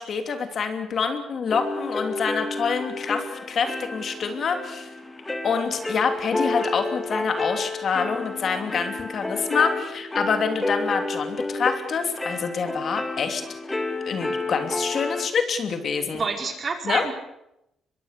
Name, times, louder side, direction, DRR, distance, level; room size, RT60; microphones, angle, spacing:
voice 1, 0.0-4.9 5.4-13.4 14.1-16.2 16.8-17.0, left 5 dB, 55° left, 6 dB, 3.0 m, -26 dB
sound 1, 1.5-15.3, left 2 dB, 15° left, 2.9 m, -30 dB
voice 2, 16.1-17.1, right 4 dB, 40° right, 3 dB, 4.9 m, -28 dB
24.0 x 22.0 x 6.7 m, 0.86 s
cardioid pair, 90°, 0 cm